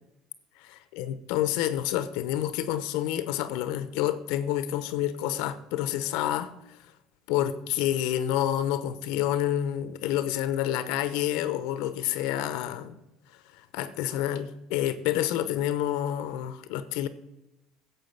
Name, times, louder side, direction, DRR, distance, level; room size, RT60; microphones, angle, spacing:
voice 1, 0.6-6.8 7.3-13.0 13.7-17.1, left 12 dB, 75° left, 13 dB, 0.8 m, -28 dB
11.0 x 7.1 x 5.8 m, 0.91 s
supercardioid pair, 95°, 0 cm